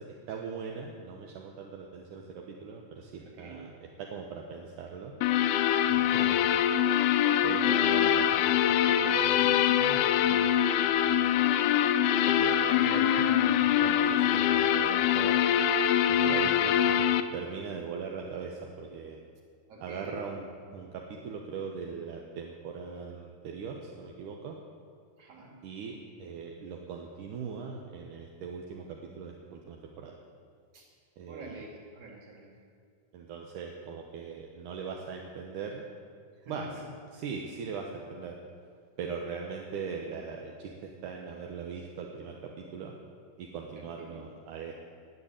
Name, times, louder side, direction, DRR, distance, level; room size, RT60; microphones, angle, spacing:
voice 1, 0.0-5.1 5.9-6.7 7.4-10.6 11.0-11.4 12.3-15.4 16.1-17.1 17.3-19.2 19.8-24.6 25.6-30.2 31.2-31.7 33.1-35.8 36.5-36.8 37.1-38.4 39.0-42.9 43.4-44.9, right 5 dB, 75° right, 1 dB, 2.5 m, -40 dB
voice 2, 3.3-3.7 5.8-6.2 16.2-16.9 19.7-20.2 25.2-25.5 30.7-30.9 31.3-32.5 36.4-36.9 43.8-44.3, right 3 dB, 50° right, -1 dB, 3.4 m, -45 dB
sound 1, 5.2-17.2, left 10 dB, 80° left, 2.1 m, -24 dB
20.0 x 6.8 x 8.8 m, 2.1 s
omnidirectional pair, 3.7 m